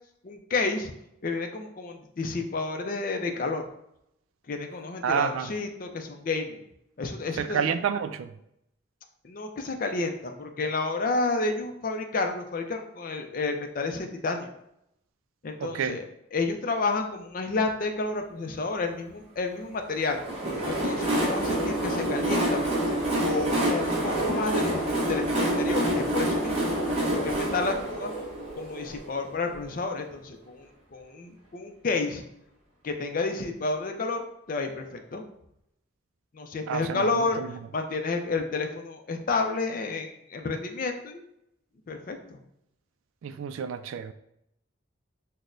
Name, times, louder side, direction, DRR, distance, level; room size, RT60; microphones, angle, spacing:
voice 1, 0.2-0.9 1.2-3.6 4.5-6.6 7.0-7.6 9.2-14.5 15.4-16.0 16.3-20.2 20.6-22.8 23.2-24.8 25.1-26.6 27.1-28.1 28.5-30.7 30.9-32.2 32.8-34.8 35.1-35.2 36.3-41.2 41.9-42.4, left 3 dB, 45° left, 5 dB, 0.4 m, -30 dB
voice 2, 5.0-5.5 7.3-8.3 15.6-16.0 36.7-37.5 43.2-44.1, right 7 dB, 85° right, 11 dB, 0.3 m, -29 dB
Train, 20.0-29.6, right 1 dB, 30° right, 0.9 m, -27 dB
5.9 x 2.1 x 2.5 m, 0.78 s
head